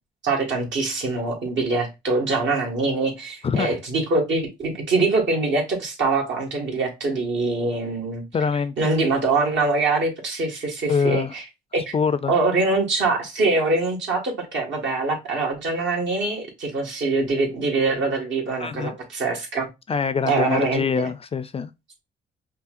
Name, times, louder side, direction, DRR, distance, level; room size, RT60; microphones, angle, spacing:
voice 1, 0.2-8.2 8.8-11.4 11.7-11.9 12.3-19.7 20.3-20.9, right 3 dB, 70° right, 1.7 m, -23 dB
voice 2, 8.3-8.9 10.9-11.3 11.9-12.3 18.6-19.0 19.9-21.7, left 6 dB, 30° left, 0.4 m, -24 dB
5.5 x 2.3 x 2.5 m
cardioid pair, 90°, 20 cm